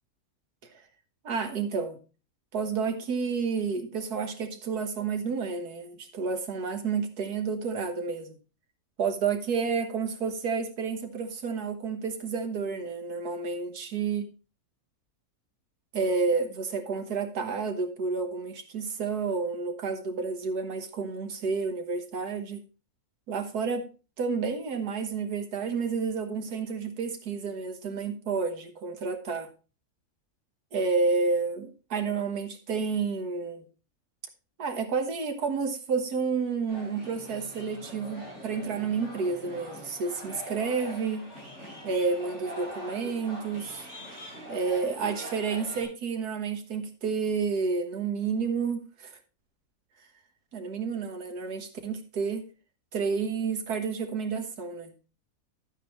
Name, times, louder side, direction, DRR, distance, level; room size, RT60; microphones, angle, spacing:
voice 1, 1.2-2.0 2.5-8.3 9.0-14.2 15.9-22.6 23.3-23.9 24.2-29.5 30.7-33.7 34.6-41.3 41.8-43.9 44.5-49.1 50.5-52.5 52.9-54.9, right 5 dB, 90° right, 1.8 m, -30 dB
sound 1, 36.7-45.8, equal, 50° right, 6.4 m, -43 dB
11.0 x 9.0 x 3.1 m
omnidirectional pair, 1.6 m